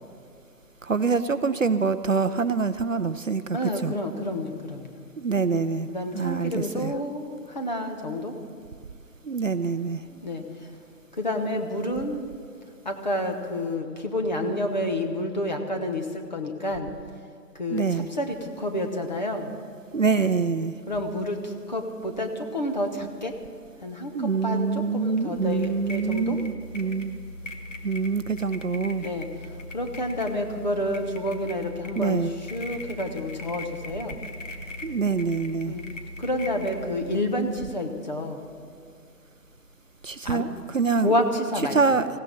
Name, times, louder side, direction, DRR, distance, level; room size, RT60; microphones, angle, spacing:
voice 1, 0.8-3.9 5.2-5.9 6.1-6.9 9.2-10.0 17.7-18.1 19.9-20.7 24.1-27.2 27.8-29.1 32.0-32.3 34.8-35.7 40.0-40.5 40.7-41.1 41.7-42.1, right 5 dB, 55° right, 12 dB, 0.6 m, -25 dB
voice 2, 3.5-4.9 5.9-8.3 10.1-10.4 11.1-12.2 12.8-16.9 17.5-19.5 20.9-23.4 23.8-26.4 29.0-34.2 35.6-35.9 36.2-38.4 40.2-40.4 41.0-41.8, left 1 dB, 25° left, 4 dB, 1.0 m, -29 dB
sound 1, 25.4-37.2, left 2 dB, 50° left, 1.5 m, -40 dB
19.0 x 16.5 x 4.1 m, 2.4 s
figure-of-eight pair, 160°, 49 cm